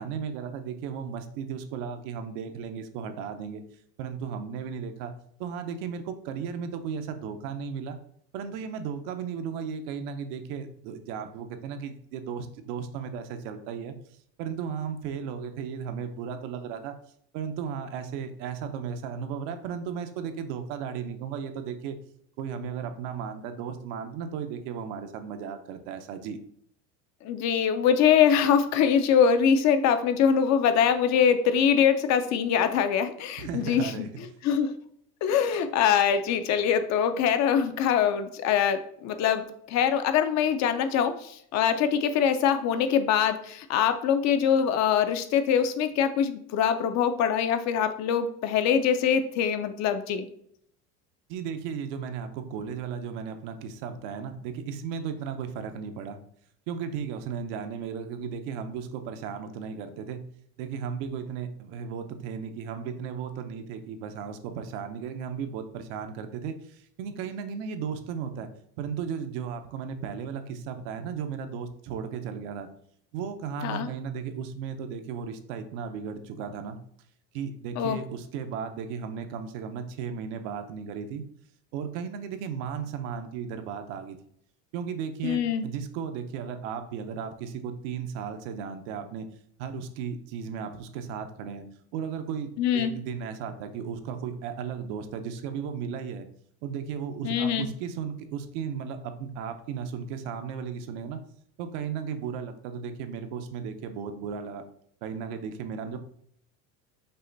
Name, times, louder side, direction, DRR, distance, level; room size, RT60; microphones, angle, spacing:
voice 1, 0.0-3.6 4.0-5.1 5.4-8.0 8.3-13.9 14.4-16.9 17.3-22.0 22.4-26.4 33.4-34.1 51.3-56.2 56.7-60.2 60.6-68.5 68.8-72.7 73.1-76.8 77.3-81.2 81.7-84.2 84.7-89.2 89.6-91.7 91.9-96.2 96.6-101.2 101.6-104.6 105.0-106.0, right 7 dB, 75° right, 8 dB, 0.7 m, -35 dB
voice 2, 27.2-34.1 34.4-34.7 35.2-50.3 73.6-73.9 77.8-78.0 85.2-85.6 92.6-92.9 97.2-97.7, left 8 dB, 50° left, 9 dB, 0.5 m, -23 dB
5.5 x 2.2 x 3.9 m, 0.66 s
supercardioid pair, 125°, 36 cm